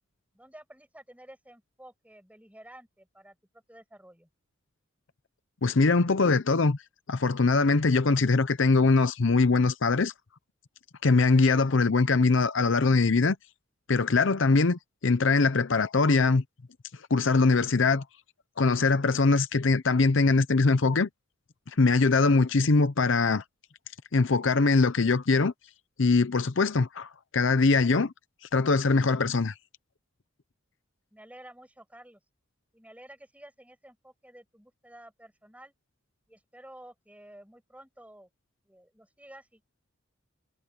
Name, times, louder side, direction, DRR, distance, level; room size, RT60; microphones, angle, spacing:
voice 1, 0.3-3.4 3.7-4.3 31.1-32.2 32.7-35.7 36.3-38.3 38.7-39.8, right 1 dB, 5° right, 7.6 m, -51 dB
voice 2, 5.6-6.8 7.1-10.1 11.0-13.4 13.9-16.4 17.1-18.0 18.6-21.1 21.8-23.4 24.1-25.5 26.0-28.1 28.5-29.5, left 3 dB, 65° left, 0.7 m, -22 dB
head